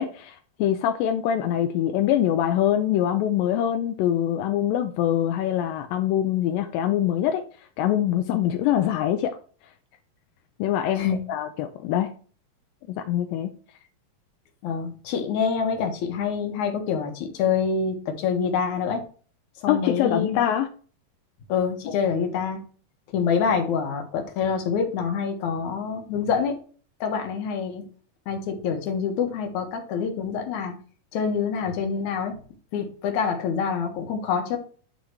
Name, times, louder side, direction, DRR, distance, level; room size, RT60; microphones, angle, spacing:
voice 1, 0.0-7.4 7.8-9.4 10.6-12.1 12.9-13.5 19.7-20.7 21.9-22.0, left 11 dB, 85° left, 7 dB, 2.3 m, -24 dB
voice 2, 14.6-19.0 19.6-20.4 21.5-22.6 23.1-26.6 27.0-27.8 28.3-30.7 31.1-32.4 32.7-34.6, left 6 dB, 65° left, 3 dB, 2.6 m, -26 dB
9.8 x 4.0 x 4.6 m, 0.41 s
omnidirectional pair, 4.0 m